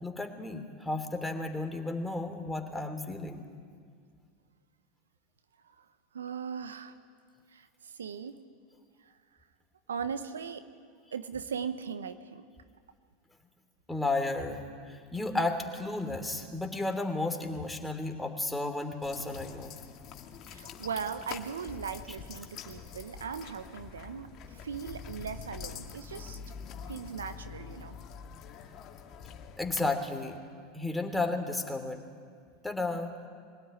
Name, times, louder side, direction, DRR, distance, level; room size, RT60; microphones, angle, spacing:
voice 1, 0.0-3.4 13.9-14.6 14.9-19.7 22.1-22.2 29.6-30.4 30.7-32.0 32.6-33.1, left 2 dB, 5° left, 5 dB, 3.1 m, -33 dB
voice 2, 6.1-7.0 7.5-8.4 9.0-9.1 9.9-10.6 11.1-12.4 20.5-26.4 26.9-28.0, right 6 dB, 80° right, 11 dB, 1.0 m, -39 dB
sound 1, 19.0-29.8, left 7 dB, 45° left, 2.2 m, -45 dB
23.5 x 17.5 x 9.8 m, 2.1 s
hypercardioid pair, 85°, 0 cm